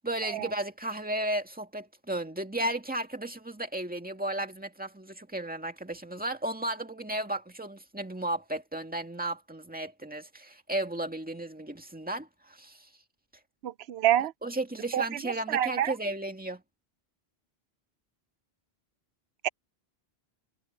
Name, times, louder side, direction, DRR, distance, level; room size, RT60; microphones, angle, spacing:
voice 1, 0.0-12.9 14.4-16.6, right 1 dB, 10° right, 2.0 m, -34 dB
voice 2, 13.6-14.3 14.9-15.0 15.5-15.9 19.4-19.5, right 12 dB, 90° right, 0.8 m, -26 dB
omnidirectional pair, 1.1 m